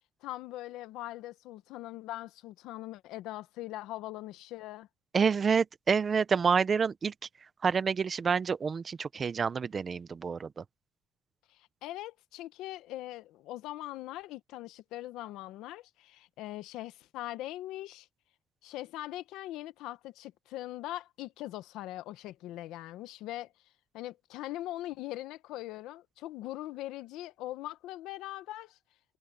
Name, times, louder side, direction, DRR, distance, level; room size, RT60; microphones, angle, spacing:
voice 1, 0.2-4.9 11.5-18.1 18.6-23.5 23.9-28.8, left 15 dB, 80° left, 1.0 m, -41 dB
voice 2, 5.1-7.1 7.6-10.6, right 6 dB, 25° right, 0.6 m, -28 dB
cardioid pair, 165°, 0 cm